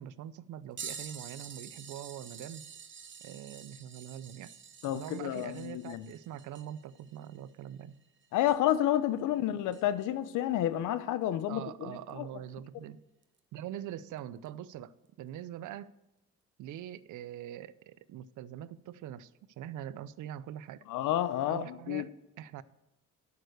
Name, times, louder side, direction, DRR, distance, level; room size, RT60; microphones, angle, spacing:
voice 1, 0.0-2.6 3.2-4.5 4.9-7.9 11.5-13.0 13.5-14.9 15.2-15.9 16.6-19.3 19.6-20.9 21.5-22.6, right 11 dB, 75° right, 0.6 m, -43 dB
sound 1, 0.8-9.0 9.7-9.8 12.1-12.2 13.2-13.4 14.5-14.6, right 6 dB, 40° right, 1.0 m, -48 dB
voice 2, 4.8-6.0 8.3-12.3 20.9-22.1, left 12 dB, 85° left, 0.7 m, -30 dB
8.8 x 6.8 x 6.6 m
cardioid pair, 90°, 30 cm